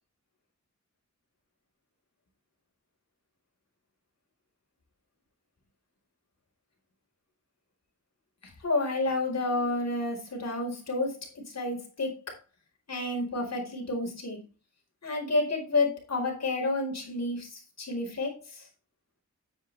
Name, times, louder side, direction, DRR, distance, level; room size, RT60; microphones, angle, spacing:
voice 1, 8.6-11.2 11.5-12.4 12.9-14.4 15.0-18.7, left 2 dB, 60° left, 1 dB, 4.8 m, -30 dB
9.3 x 7.7 x 3.4 m, 0.30 s
cardioid pair, 60°, 29 cm